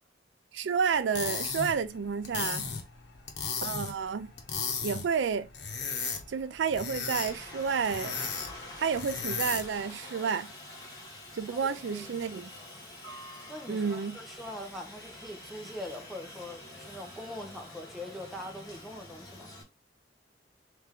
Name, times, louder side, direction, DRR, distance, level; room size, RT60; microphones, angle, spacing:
voice 1, 0.5-2.7 3.6-4.3 4.8-5.5 6.3-8.2 8.8-10.5 11.3-12.5 13.7-14.2, right 6 dB, 90° right, 0.4 m, -30 dB
sound 1, 1.0-9.8, left 5 dB, 80° left, 1.1 m, -36 dB
Aircraft, 7.1-19.6, left 1 dB, 20° left, 2.0 m, -46 dB
voice 2, 11.4-12.1 12.6-12.7 13.5-19.5, left 1 dB, ahead, 0.8 m, -43 dB
3.5 x 3.3 x 3.6 m
head